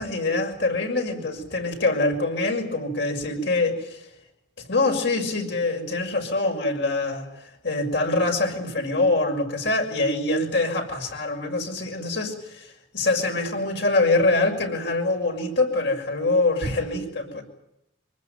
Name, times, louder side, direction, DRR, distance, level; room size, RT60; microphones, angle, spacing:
voice 1, 0.0-4.1 4.7-7.3 7.6-17.4, left 2 dB, 60° left, 2 dB, 6.3 m, -24 dB
25.5 x 20.0 x 9.3 m, 0.85 s
head